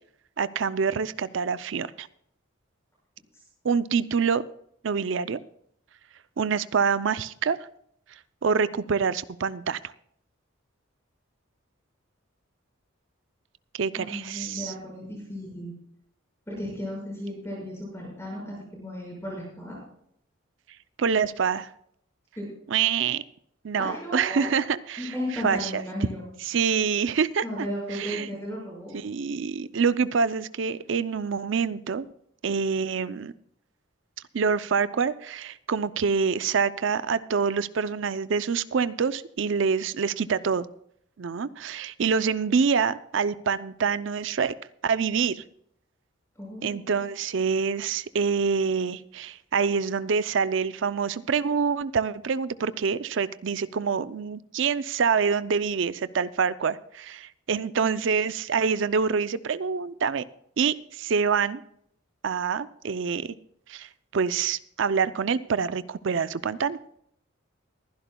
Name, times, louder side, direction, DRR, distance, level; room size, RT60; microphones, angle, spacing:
voice 1, 0.4-2.1 3.6-4.4 4.8-5.4 6.4-7.6 8.4-9.8 13.7-14.7 21.0-21.7 22.7-23.2 23.6-25.8 26.4-28.3 28.9-32.1 32.4-33.3 34.3-40.7 41.2-44.5 44.8-45.4 46.6-60.2 60.6-61.6 62.2-63.4 63.7-66.8, right 6 dB, 65° right, 15 dB, 0.5 m, -26 dB
voice 2, 13.9-15.7 16.5-19.8 22.4-22.5 23.8-24.5 25.0-26.2 27.4-29.0 46.4-46.9, left 1 dB, 10° left, -4 dB, 6.1 m, -35 dB
23.5 x 11.0 x 2.3 m, 0.71 s
head